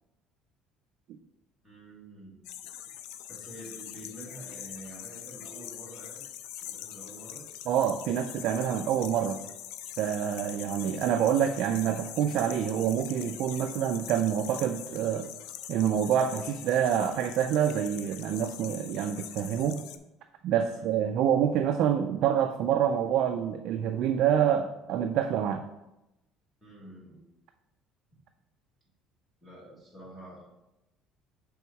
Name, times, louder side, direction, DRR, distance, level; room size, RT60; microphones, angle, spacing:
voice 1, 1.6-2.4 3.3-6.2 6.6-7.5 20.6-20.9 26.6-27.3 29.4-30.5, right 1 dB, 5° left, -5 dB, 1.6 m, -47 dB
sound 1, 2.4-20.0, left 11 dB, 90° left, 0.4 m, -43 dB
voice 2, 7.7-9.4 10.0-15.3 15.7-19.8 20.4-25.7, right 9 dB, 50° right, 6 dB, 0.3 m, -27 dB
5.9 x 3.5 x 4.6 m, 0.93 s
cardioid pair, 180°, 0 cm